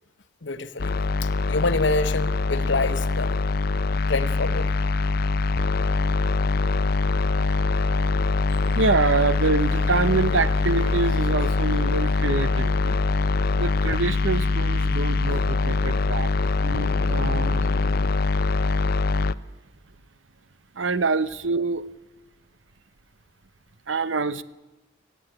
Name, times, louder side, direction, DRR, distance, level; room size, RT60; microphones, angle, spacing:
voice 1, 0.4-3.4 4.1-4.8, left 3 dB, 70° left, 11 dB, 1.1 m, -27 dB
sound 1, 0.8-19.3, left 3 dB, 55° left, 0.6 m, -23 dB
voice 2, 8.5-13.0 13.6-17.7 20.7-21.9 23.9-24.4, right 4 dB, 90° right, 15 dB, 0.8 m, -26 dB
17.5 x 15.5 x 10.0 m, 1.1 s
head